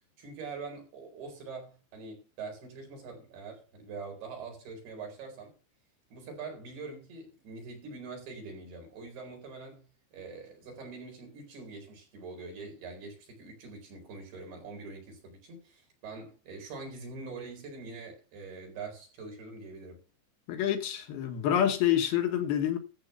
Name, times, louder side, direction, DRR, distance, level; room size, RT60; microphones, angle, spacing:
voice 1, 0.2-5.5 6.1-20.0, right 4 dB, 65° right, 6.3 m, -44 dB
voice 2, 20.5-22.8, left 10 dB, 70° left, 2.9 m, -27 dB
14.0 x 4.7 x 6.8 m
omnidirectional pair, 4.9 m